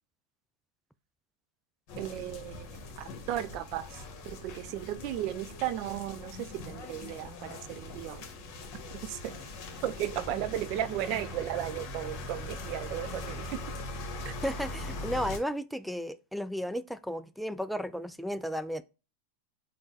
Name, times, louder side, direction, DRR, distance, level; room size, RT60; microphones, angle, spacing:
sound 1, 1.9-15.4, left 2 dB, 50° left, 1.3 m, -41 dB
voice 1, 2.0-8.3 9.0-9.4 9.8-13.6 14.2-14.3, right 12 dB, 50° right, 0.5 m, -35 dB
voice 2, 14.4-18.8, equal, ahead, 0.3 m, -34 dB
3.7 x 2.2 x 4.0 m
hypercardioid pair, 120°, 0 cm